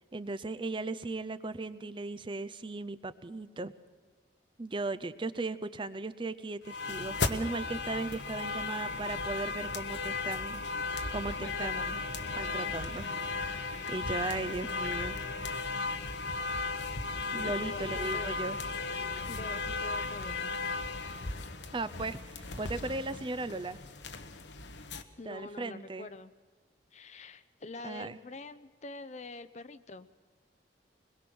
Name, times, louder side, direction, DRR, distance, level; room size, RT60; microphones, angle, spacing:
voice 1, 0.1-3.7 4.6-10.6 10.9-12.0 12.4-13.1 13.9-15.2 17.3-18.6 21.7-23.8 25.3-26.1 27.8-28.2, right 3 dB, 30° right, 14 dB, 0.6 m, -37 dB
sound 1, 6.7-25.0, left 4 dB, 85° left, 1.2 m, -36 dB
Bowed string instrument, 10.6-16.0, right 1 dB, 60° right, 1.6 m, -52 dB
voice 2, 11.4-12.0 17.6-18.4 19.3-20.5 21.4-21.5 24.9-26.3 26.9-30.1, left 3 dB, 40° left, 13 dB, 0.7 m, -45 dB
22.5 x 21.5 x 6.1 m, 1.4 s
head